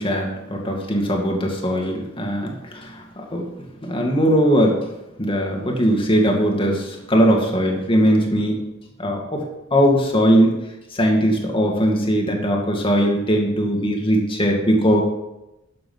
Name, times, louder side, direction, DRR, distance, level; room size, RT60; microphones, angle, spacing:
voice 1, 0.0-3.5 3.8-4.8 5.2-8.6 9.0-10.5 10.9-15.0, equal, 25° left, 1 dB, 2.2 m, -20 dB
12.0 x 7.7 x 5.5 m, 0.92 s
head